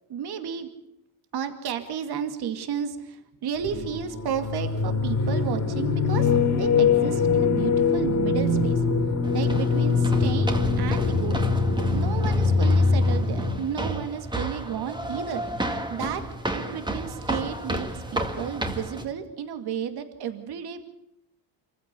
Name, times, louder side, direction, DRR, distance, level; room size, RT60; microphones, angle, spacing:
voice 1, 0.1-0.7 1.3-8.8 9.3-11.5 11.9-15.4 15.9-16.2 16.5-20.9, right 8 dB, 60° right, 8 dB, 2.4 m, -32 dB
sound 1, 3.6-13.6, left 4 dB, 35° left, 2.7 m, -23 dB
sound 2, 9.2-19.0, right 1 dB, 10° right, 1.9 m, -32 dB
26.0 x 15.0 x 8.4 m, 0.80 s
cardioid pair, 115°, 44 cm